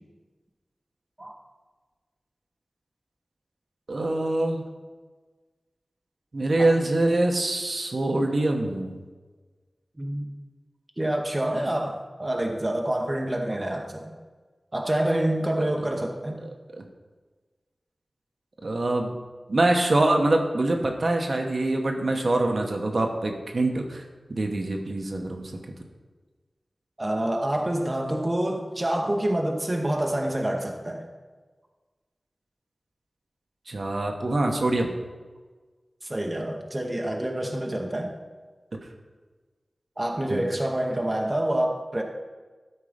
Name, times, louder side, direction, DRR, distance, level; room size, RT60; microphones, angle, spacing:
voice 1, 3.9-4.6 6.3-9.0 16.4-16.8 18.6-19.1 19.5-24.0 24.3-25.5 33.7-34.9 40.3-40.4, right 2 dB, 60° right, 3 dB, 1.0 m, -24 dB
voice 2, 10.0-10.3 11.0-14.1 14.7-16.5 27.0-31.0 36.0-38.1 40.0-42.0, right 1 dB, 25° right, 2 dB, 0.9 m, -27 dB
12.5 x 4.6 x 5.0 m, 1.4 s
wide cardioid pair, 75°, 0 cm